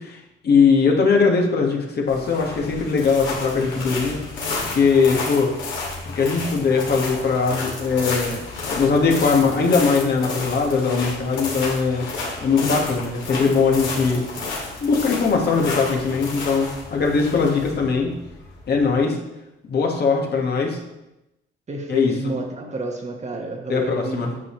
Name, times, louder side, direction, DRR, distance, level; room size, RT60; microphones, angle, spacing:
voice 1, 0.0-4.2 4.7-5.5 6.1-12.1 12.4-14.2 14.8-18.1 18.7-19.2 19.7-20.8 21.9-22.3 23.7-24.3, left 5 dB, 55° left, 0 dB, 1.7 m, -20 dB
sound 1, 2.1-19.0, left 3 dB, 70° left, 2.6 m, -31 dB
voice 2, 21.7-24.4, right 2 dB, 35° right, 2 dB, 1.4 m, -29 dB
9.3 x 6.4 x 3.2 m, 0.93 s
cardioid pair, 90°, 20 cm